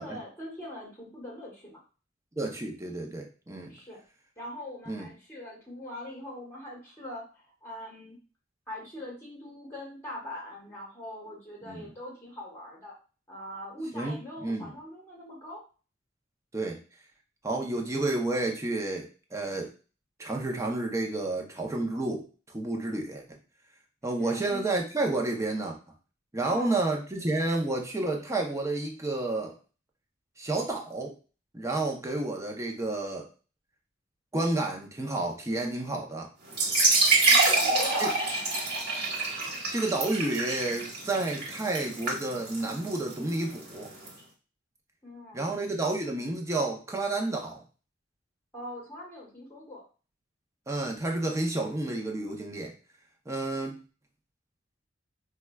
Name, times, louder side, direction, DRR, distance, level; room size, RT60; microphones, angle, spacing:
voice 1, 0.0-1.8 3.7-4.0 4.4-8.2 8.7-12.9 13.3-15.6 24.2-24.6 26.4-26.8 37.3-38.2 45.0-45.5 48.5-49.8, left 1 dB, 10° left, -4 dB, 1.1 m, -42 dB
voice 2, 2.4-3.7 4.9-5.1 11.6-11.8 13.9-14.7 16.5-16.8 17.4-19.7 20.2-22.3 22.5-23.2 24.0-25.8 26.3-29.6 30.4-31.1 31.5-33.3 34.3-36.3 38.0-38.1 39.7-43.9 45.3-47.6 50.7-52.7 53.3-53.8, right 2 dB, 15° right, 1 dB, 0.6 m, -30 dB
sound 1, 36.5-44.1, right 2 dB, 55° right, 1.3 m, -26 dB
4.5 x 2.2 x 2.2 m, 0.35 s
head